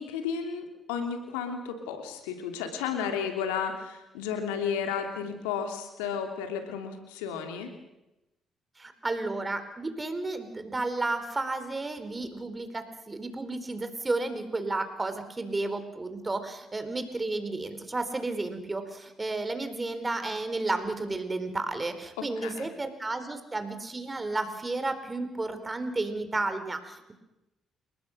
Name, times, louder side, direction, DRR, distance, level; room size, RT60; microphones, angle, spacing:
voice 1, 0.0-7.7 22.2-22.7, left 7 dB, 85° left, 5 dB, 3.0 m, -33 dB
voice 2, 8.8-27.1, right 2 dB, 25° right, 9 dB, 4.1 m, -32 dB
30.0 x 19.5 x 6.5 m, 0.95 s
hypercardioid pair, 50°, 0 cm